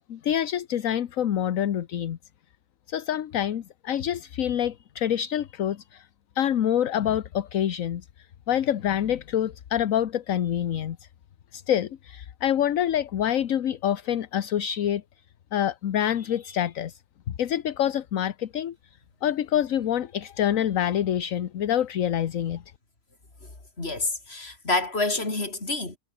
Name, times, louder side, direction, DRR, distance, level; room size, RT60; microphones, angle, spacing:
voice 1, 0.1-2.2 2.9-6.1 6.3-11.0 11.5-15.0 15.5-17.0 17.4-18.7 19.2-22.6, left 10 dB, 65° left, 1.3 m, -26 dB
voice 2, 23.8-26.0, left 2 dB, 40° left, 4.1 m, -28 dB
omnidirectional pair, 1.6 m